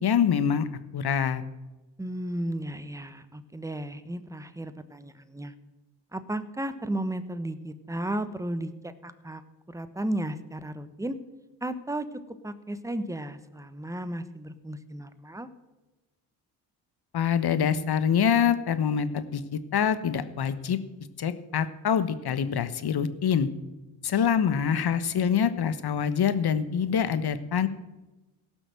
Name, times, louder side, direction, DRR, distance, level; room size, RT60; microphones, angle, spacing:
voice 1, 0.0-0.7 0.9-1.4 17.1-20.8 21.2-23.5 24.0-27.7, left 7 dB, 55° left, 12 dB, 1.3 m, -25 dB
voice 2, 2.0-5.5 6.1-9.4 9.7-11.2 11.6-12.1 12.4-15.5, right 1 dB, 5° right, 11 dB, 1.2 m, -34 dB
16.5 x 6.1 x 7.7 m, 1.1 s
supercardioid pair, 55°, 46 cm